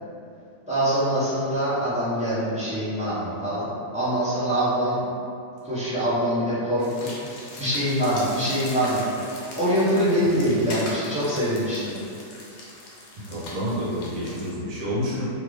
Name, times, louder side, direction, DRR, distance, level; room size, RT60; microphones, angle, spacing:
voice 1, 0.7-5.0 5.6-12.0, equal, 10° right, -12 dB, 0.4 m, -24 dB
sound 1, 6.8-14.5, left 2 dB, 80° left, 1.2 m, -40 dB
voice 2, 13.2-15.3, equal, 60° right, -7 dB, 1.2 m, -29 dB
2.9 x 2.5 x 3.2 m, 2.6 s
omnidirectional pair, 1.7 m